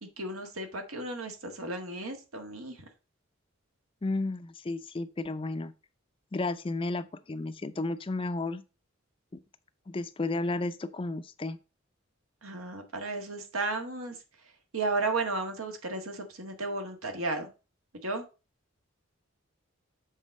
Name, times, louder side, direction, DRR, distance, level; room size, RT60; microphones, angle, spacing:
voice 1, 0.0-2.8 12.4-14.2 14.7-17.5 17.9-18.2, right 3 dB, 85° right, 1.6 m, -34 dB
voice 2, 4.0-5.7 6.3-8.6 9.9-11.6, left 2 dB, 25° left, 0.4 m, -32 dB
7.3 x 3.9 x 5.3 m
head